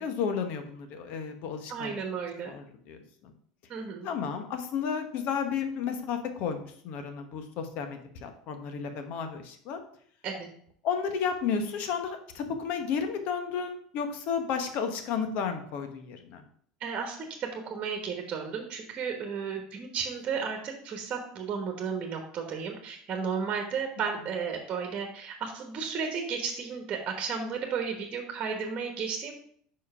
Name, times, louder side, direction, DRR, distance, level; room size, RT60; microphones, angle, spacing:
voice 1, 0.0-2.0 2.4-3.0 3.2-3.3 4.0-9.8 10.8-16.4, left 6 dB, 60° left, 7 dB, 1.1 m, -32 dB
voice 2, 1.7-2.5 3.7-4.1 10.2-10.5 16.8-29.3, right 6 dB, 40° right, 3 dB, 1.3 m, -33 dB
5.3 x 4.7 x 5.6 m, 0.62 s
supercardioid pair, 110°, 3 cm